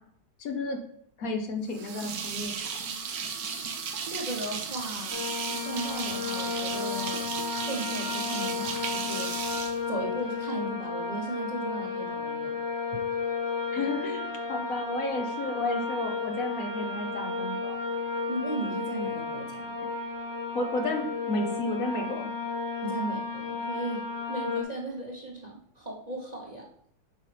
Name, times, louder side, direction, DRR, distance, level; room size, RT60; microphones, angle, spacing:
voice 1, 0.4-0.8 1.2-2.9 13.7-17.8 20.5-22.3, left 2 dB, 65° left, 4 dB, 1.3 m, -32 dB
sound 1, 1.7-10.5, right 6 dB, 70° right, 1.3 m, -35 dB
voice 2, 4.0-7.3 7.6-9.3 9.9-12.6 18.3-19.7 22.8-26.7, right 1 dB, 30° right, -2 dB, 1.0 m, -36 dB
sound 2, 5.1-24.6, left 4 dB, 15° left, 1.4 m, -33 dB
7.3 x 5.4 x 3.3 m, 0.68 s
omnidirectional pair, 1.7 m